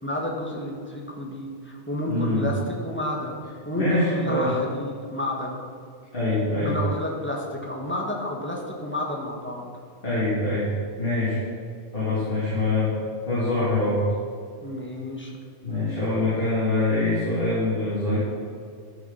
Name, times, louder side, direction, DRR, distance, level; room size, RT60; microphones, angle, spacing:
voice 1, 0.0-3.4 3.6-5.6 6.6-9.7 12.8-12.9 14.6-15.3, left 1 dB, 10° left, -2 dB, 1.7 m, -30 dB
voice 2, 2.1-2.4 3.8-4.5 6.1-6.8 10.0-10.7 11.0-11.4 11.9-12.9 13.2-14.1 15.6-18.2, left 2 dB, 50° left, -10 dB, 3.5 m, -24 dB
11.0 x 7.9 x 5.8 m, 2.1 s
omnidirectional pair, 1.2 m